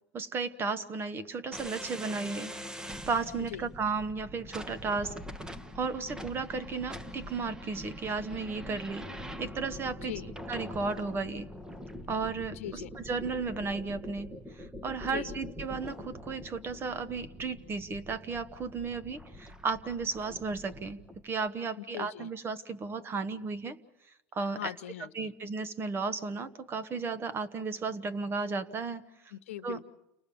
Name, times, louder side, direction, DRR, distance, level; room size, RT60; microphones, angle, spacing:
voice 1, 0.1-2.5 3.1-5.1 5.7-9.1 9.4-10.1 10.5-11.5 12.1-23.8 24.3-24.7 25.1-29.0 29.6-29.8, right 4 dB, 30° right, 12 dB, 1.3 m, -34 dB
sound 1, 1.5-21.2, equal, 10° right, 1.2 m, -44 dB
voice 2, 3.4-3.7 10.0-10.3 12.5-12.9 15.0-15.4 21.8-22.3 24.4-25.3 29.3-29.9, left 13 dB, 90° left, 10 dB, 1.0 m, -41 dB
29.5 x 19.0 x 7.1 m, 0.90 s
supercardioid pair, 105°, 7 cm